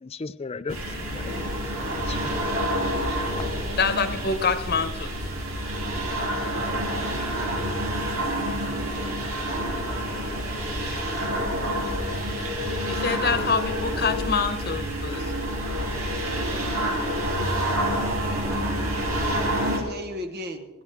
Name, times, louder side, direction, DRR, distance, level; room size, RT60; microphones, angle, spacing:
voice 1, 0.0-1.6 1.9-2.5 2.9-3.5, left 4 dB, 25° left, 14 dB, 0.4 m, -37 dB
sound 1, 0.7-19.8, equal, 75° right, 3.0 m, -28 dB
voice 2, 3.8-5.1 12.9-15.3, left 5 dB, 45° left, 9 dB, 1.0 m, -26 dB
voice 3, 19.6-20.7, equal, 50° right, 7 dB, 1.3 m, -37 dB
23.0 x 10.5 x 3.6 m, 1.3 s
head